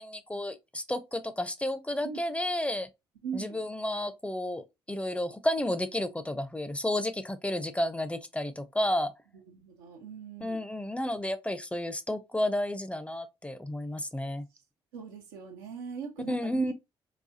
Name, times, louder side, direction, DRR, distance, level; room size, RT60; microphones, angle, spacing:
voice 1, 0.0-2.9 3.3-9.1 10.4-14.5 16.3-16.7, left 1 dB, 10° left, 0.6 m, -31 dB
voice 2, 3.2-3.6 9.5-10.6 14.9-16.7, right 6 dB, 85° right, 0.8 m, -40 dB
4.1 x 2.3 x 2.7 m
hypercardioid pair, 45°, 12 cm